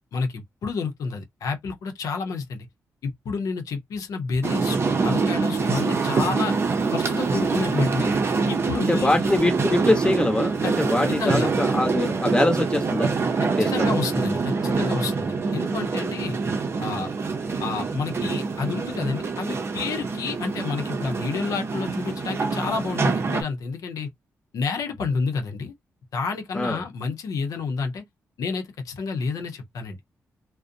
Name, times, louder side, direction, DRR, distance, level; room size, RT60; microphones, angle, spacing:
voice 1, 0.1-2.7 3.0-6.6 6.9-8.1 8.5-9.1 10.6-10.7 11.2-11.5 13.4-16.4 16.8-17.1 17.6-24.1 24.5-25.7 26.1-28.0 28.4-30.0, left 4 dB, 80° left, 0.7 m, -29 dB
sound 1, 4.4-23.4, right 4 dB, 45° right, 0.6 m, -25 dB
voice 2, 8.9-13.1 13.6-13.9 26.5-26.8, left 1 dB, 15° left, 0.9 m, -23 dB
2.5 x 2.1 x 2.5 m
cardioid pair, 85°, 6 cm